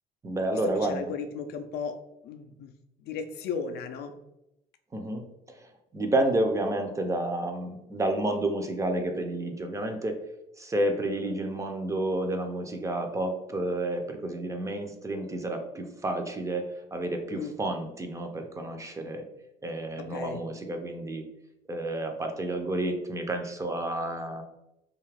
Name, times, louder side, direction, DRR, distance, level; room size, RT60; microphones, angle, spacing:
voice 1, 0.2-1.1 4.9-5.3 5.9-10.2 10.6-19.2 19.6-21.3 21.7-24.4, right 1 dB, 20° right, 4 dB, 0.4 m, -30 dB
voice 2, 0.8-2.7 3.0-4.1 17.3-17.6 20.0-20.4, left 5 dB, 70° left, 7 dB, 0.4 m, -36 dB
2.6 x 2.3 x 3.3 m, 0.86 s
cardioid pair, 110°, 17 cm